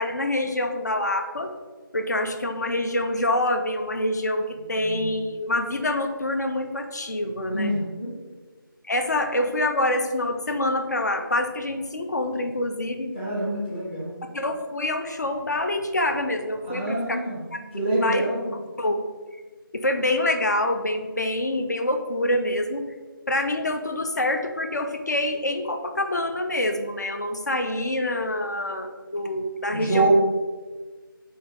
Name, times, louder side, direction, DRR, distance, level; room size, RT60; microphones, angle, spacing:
voice 1, 0.0-1.5 1.9-7.7 8.8-13.1 14.3-17.2 17.5-17.6 18.0-18.3 18.8-19.0 19.7-22.8 23.3-30.1, left 1 dB, 50° left, 6 dB, 0.4 m, -26 dB
voice 2, 7.5-8.1 13.1-14.1 16.7-17.4 17.7-18.5 29.7-30.1, right 2 dB, 30° left, -10 dB, 0.9 m, -26 dB
4.2 x 2.6 x 3.7 m, 1.4 s
figure-of-eight pair, 165°, 12 cm